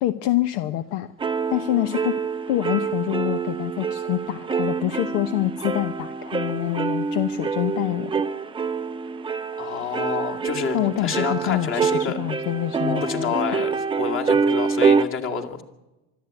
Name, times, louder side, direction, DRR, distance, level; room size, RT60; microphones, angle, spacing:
voice 1, 0.0-1.1 1.5-2.2 2.5-8.2 10.7-13.3, left 14 dB, 60° left, 11 dB, 1.0 m, -26 dB
sound 1, 1.2-15.0, right 5 dB, 15° right, 0.6 m, -26 dB
voice 2, 9.6-12.2 12.8-15.6, left 6 dB, 30° left, 3 dB, 2.5 m, -28 dB
24.5 x 12.5 x 9.0 m, 1.0 s
supercardioid pair, 130°, 38 cm